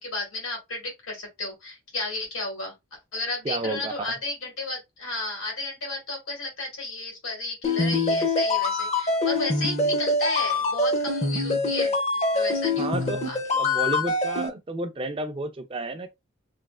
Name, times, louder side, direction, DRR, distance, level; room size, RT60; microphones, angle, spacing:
voice 1, 0.0-12.9 13.2-13.4 13.7-13.8, left 2 dB, 90° left, 1.8 m, -33 dB
voice 2, 3.4-3.9 12.8-13.2 13.6-16.1, right 2 dB, 25° right, 0.4 m, -31 dB
sound 1, 7.6-14.5, left 2 dB, 30° left, 0.5 m, -24 dB
3.2 x 2.7 x 2.4 m
head